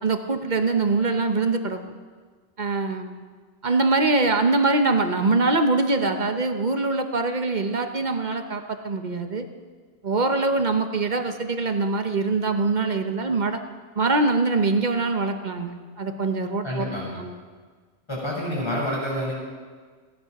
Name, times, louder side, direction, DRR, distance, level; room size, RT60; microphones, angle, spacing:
voice 1, 0.0-1.8 2.6-3.2 3.6-9.5 10.0-13.6 14.0-16.9 17.1-17.3, right 3 dB, 45° right, 7 dB, 1.0 m, -23 dB
voice 2, 16.6-17.2 18.1-19.3, left 1 dB, 25° left, -5 dB, 5.7 m, -28 dB
16.5 x 11.0 x 5.9 m, 1.5 s
omnidirectional pair, 1.2 m